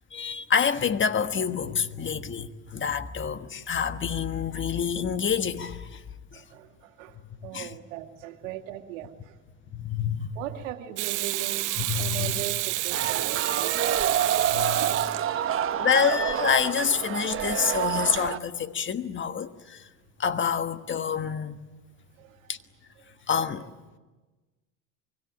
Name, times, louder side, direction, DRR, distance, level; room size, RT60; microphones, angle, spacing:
voice 1, 0.1-6.0 6.3-6.4 7.5-7.7 9.7-10.3 11.8-12.4 13.0-13.1 14.5-14.8 15.8-19.9 20.2-21.6 22.5-22.6 23.3-23.6, left 7 dB, 30° left, 1.4 m, -27 dB
voice 2, 6.3-7.2 7.4-9.3 10.4-15.6 22.2-22.5, right 12 dB, 85° right, 2.2 m, -40 dB
Water tap faucet / Sink (filling or washing), 11.0-15.7 18.1-18.3, right 17 dB, 55° right, 1.0 m, -30 dB
sound 1, 12.9-18.4, right 9 dB, 35° right, 1.2 m, -28 dB
24.5 x 23.5 x 9.0 m
supercardioid pair, 95°, 38 cm